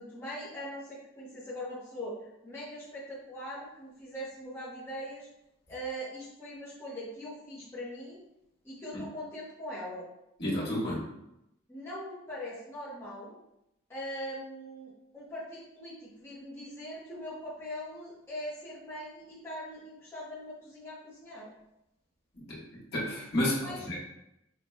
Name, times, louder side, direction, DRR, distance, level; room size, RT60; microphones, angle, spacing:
voice 1, 0.0-5.3 5.7-8.2 8.6-10.1 11.7-13.3 13.9-21.5 23.6-24.0, equal, 10° left, -10 dB, 1.1 m, -41 dB
voice 2, 10.4-11.0 22.5-22.6 22.9-24.0, left 1 dB, 55° left, -6 dB, 1.5 m, -31 dB
5.9 x 3.0 x 2.2 m, 0.85 s
head